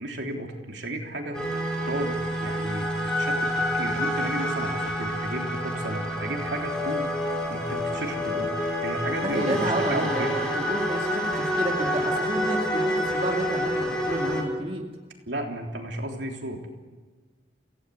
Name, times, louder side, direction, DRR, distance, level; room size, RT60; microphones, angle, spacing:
voice 1, 0.0-1.5 1.8-2.2 2.4-7.1 7.5-8.6 8.8-10.3 15.3-16.7, right 1 dB, 75° right, 2 dB, 3.3 m, -33 dB
sound 1, 1.3-14.4, equal, 5° left, 4.2 m, -28 dB
voice 2, 9.2-14.8, right 1 dB, 30° right, 0 dB, 2.3 m, -31 dB
26.5 x 16.5 x 8.2 m, 1.3 s
head